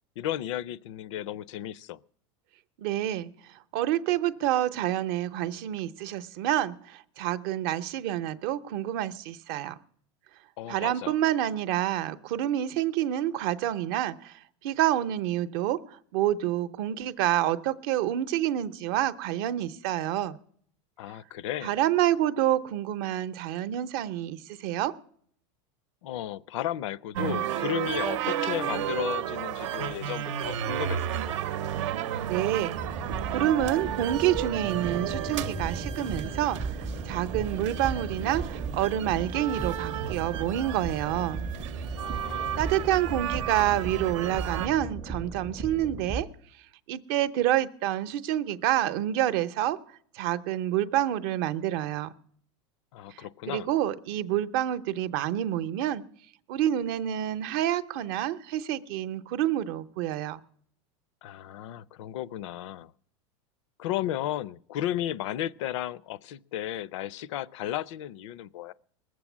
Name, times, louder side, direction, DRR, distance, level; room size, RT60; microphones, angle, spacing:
voice 1, 0.2-2.0 10.6-11.1 21.0-21.7 26.0-31.0 31.3-31.4 42.0-42.6 52.9-53.7 61.2-62.9 63.8-68.7, left 12 dB, 80° left, 0.5 m, -34 dB
voice 2, 2.8-9.8 10.7-20.4 21.6-24.9 32.3-32.8 33.3-41.5 42.3-46.3 46.9-49.8 50.1-52.1 53.1-56.0 56.5-60.4, right 12 dB, 50° right, 0.7 m, -28 dB
sound 1, 27.2-44.7, right 11 dB, 85° right, 0.8 m, -33 dB
sound 2, 32.7-46.2, right 4 dB, 10° right, 0.5 m, -36 dB
20.0 x 7.6 x 7.2 m
supercardioid pair, 170°, 15 cm